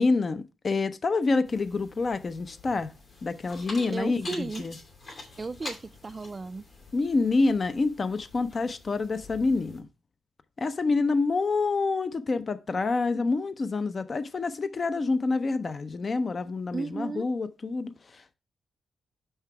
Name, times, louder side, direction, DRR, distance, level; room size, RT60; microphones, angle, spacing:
voice 1, 0.0-2.9 3.2-4.7 6.9-9.9 10.6-18.4, left 3 dB, 40° left, 0.5 m, -27 dB
sound 1, 1.4-9.8, left 2 dB, 60° left, 2.6 m, -46 dB
voice 2, 3.9-4.6 5.4-6.6 16.7-17.3, right 3 dB, 30° right, 0.3 m, -34 dB
5.7 x 5.6 x 4.6 m
wide cardioid pair, 120°, 0 cm